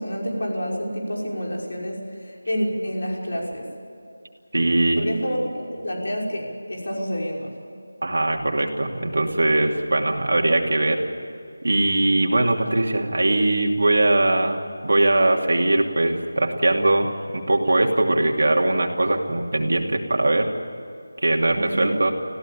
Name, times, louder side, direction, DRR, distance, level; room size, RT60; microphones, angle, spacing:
voice 1, 0.0-3.7 5.0-7.5 21.6-21.9, equal, 65° left, -1 dB, 5.8 m, -28 dB
voice 2, 4.5-5.0 8.0-11.0 11.6-17.1 17.3-20.5 21.2-22.1, right 2 dB, 60° right, 1 dB, 2.7 m, -21 dB
26.5 x 16.0 x 8.7 m, 2.5 s
figure-of-eight pair, 175°, 0 cm